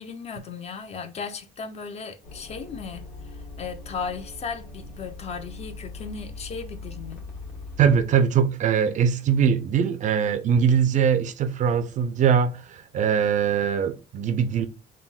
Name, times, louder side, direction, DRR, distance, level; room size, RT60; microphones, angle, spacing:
voice 1, 0.0-7.2, left 5 dB, 40° left, 0.5 m, -36 dB
sound 1, 2.2-8.1, left 3 dB, 60° left, 1.3 m, -40 dB
voice 2, 7.8-14.7, right 7 dB, 50° right, 0.4 m, -22 dB
3.5 x 2.1 x 2.2 m
cardioid pair, 110°, 17 cm